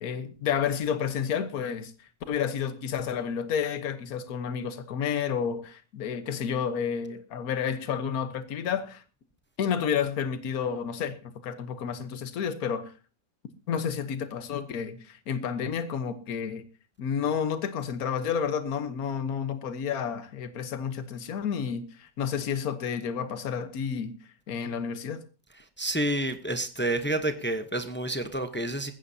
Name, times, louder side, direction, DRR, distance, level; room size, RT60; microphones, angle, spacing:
voice 1, 0.0-9.0 9.6-12.9 13.7-16.6 17.0-24.2 24.5-25.2, left 7 dB, 60° left, 1.5 m, -30 dB
voice 2, 25.8-28.9, right 1 dB, 10° left, 0.5 m, -29 dB
19.5 x 15.0 x 2.8 m
omnidirectional pair, 1.9 m